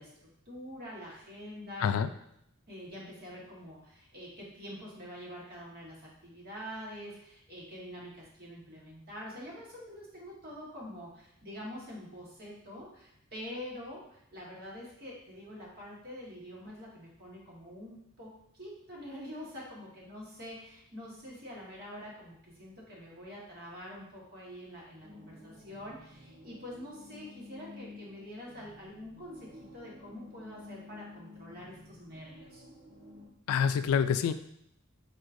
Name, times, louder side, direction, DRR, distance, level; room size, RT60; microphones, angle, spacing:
voice 1, 0.0-2.0 2.7-32.6, equal, 45° right, -4 dB, 1.4 m, -46 dB
voice 2, 1.8-2.1 33.5-34.3, left 7 dB, 85° left, 11 dB, 0.3 m, -26 dB
sound 1, 25.0-33.3, left 2 dB, 85° right, 1.8 m, -52 dB
4.6 x 4.2 x 2.6 m, 0.76 s
head